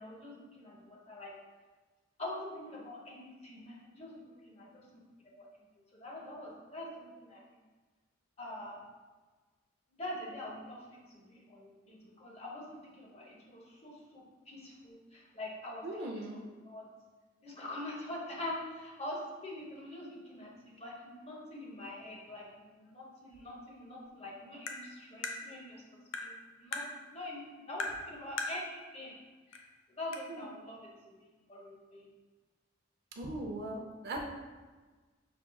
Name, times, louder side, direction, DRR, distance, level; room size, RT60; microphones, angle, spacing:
voice 1, 0.0-1.3 2.2-5.0 5.4-5.5 5.9-7.4 8.4-8.8 9.9-16.2 16.6-16.8 17.4-26.8 27.1-29.1 29.5-29.6 29.9-30.9 31.2-32.0, left 1 dB, 30° left, -2 dB, 0.9 m, -44 dB
voice 2, 15.8-16.4 30.3-30.5 33.2-34.2, right 1 dB, 55° right, 0 dB, 0.5 m, -39 dB
Tap, 24.7-24.8 25.2-25.4 26.1-26.3 26.7-26.9 27.8-28.0 28.4-28.6 29.5-29.6 30.1-30.2, left 3 dB, 85° left, 0.5 m, -36 dB
5.9 x 3.5 x 2.3 m, 1.3 s
head